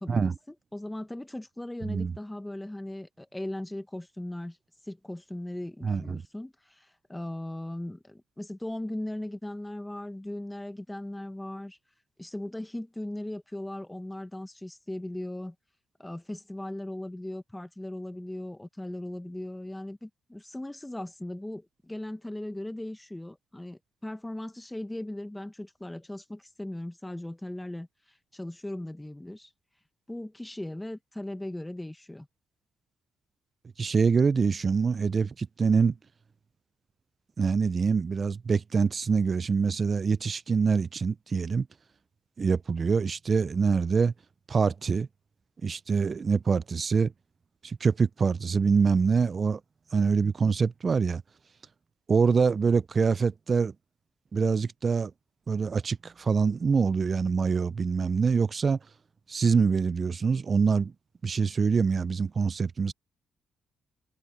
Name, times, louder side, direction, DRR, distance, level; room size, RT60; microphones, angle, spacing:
voice 1, 0.0-4.6 4.8-11.8 12.2-15.5 16.0-29.5 30.1-32.3, left 1 dB, 10° left, 1.5 m, -38 dB
voice 2, 5.8-6.2 33.8-35.9 37.4-41.7 42.4-44.1 44.5-45.1 45.6-47.1 47.6-49.6 49.9-51.2 52.1-53.7 54.3-55.1 55.5-58.8 59.3-60.9 61.2-62.9, right 5 dB, 40° right, 0.5 m, -25 dB
cardioid pair, 90°, 0 cm